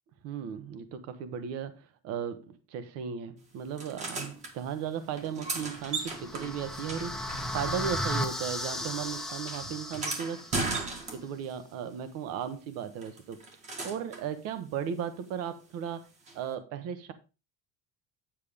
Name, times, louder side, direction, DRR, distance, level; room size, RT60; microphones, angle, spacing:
voice 1, 0.2-10.8 11.1-13.4 13.8-16.1 16.3-17.1, right 8 dB, 55° right, 1.2 m, -36 dB
sound 1, 3.8-4.5 5.1-8.1 8.4-11.5 13.0-14.3 16.3-16.4, right 3 dB, 25° right, 1.6 m, -37 dB
sound 2, 5.6-10.7, left 1 dB, ahead, 0.7 m, -35 dB
8.6 x 7.5 x 3.5 m
cardioid pair, 170°, 29 cm